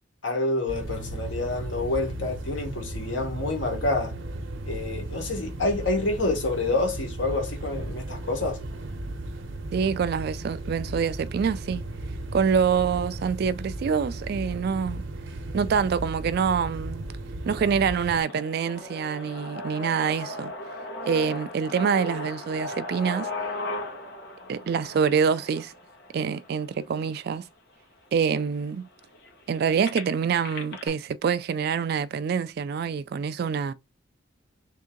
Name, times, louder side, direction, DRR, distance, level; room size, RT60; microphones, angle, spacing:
voice 1, 0.2-4.1 4.7-8.6, left 2 dB, 80° left, 1.4 m, -28 dB
sound 1, 0.7-18.2, right 1 dB, 85° right, 0.8 m, -35 dB
voice 2, 9.7-11.8 12.3-15.0 15.5-17.1 17.5-20.5 21.1-23.3 24.5-25.7 26.1-27.5 28.1-28.8 29.5-33.7, right 6 dB, 55° right, 0.3 m, -26 dB
sound 2, 17.5-27.4 28.1-28.2 28.4-30.9, left 2 dB, 60° left, 1.2 m, -37 dB
3.5 x 2.7 x 3.7 m
head